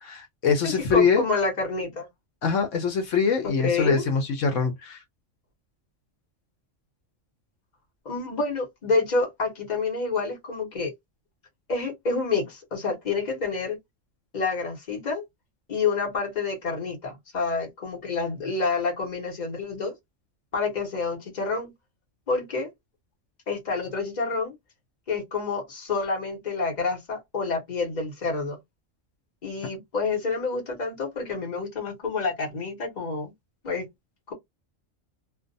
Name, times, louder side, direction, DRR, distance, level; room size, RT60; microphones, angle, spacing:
voice 1, 0.0-1.2 2.4-5.0, left 5 dB, 75° left, 1.0 m, -23 dB
voice 2, 0.6-2.1 3.4-4.0 8.0-10.9 11.7-13.8 14.3-15.2 15.7-20.0 20.5-21.7 22.3-22.7 23.5-24.6 25.1-28.6 29.4-33.3 33.6-33.9 34.3-34.4, left 4 dB, 35° left, 1.1 m, -28 dB
2.4 x 2.2 x 2.5 m
omnidirectional pair, 1.3 m